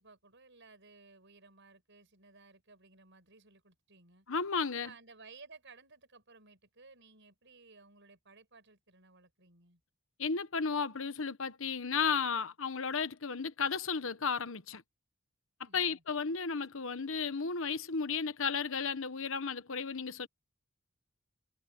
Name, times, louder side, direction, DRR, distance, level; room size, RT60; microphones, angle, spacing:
voice 1, 0.0-4.3 4.7-9.8 15.6-16.0, right 4 dB, 55° right, 7.1 m, -58 dB
voice 2, 4.3-4.9 10.2-14.8 15.7-20.3, left 5 dB, 65° left, 1.1 m, -34 dB
head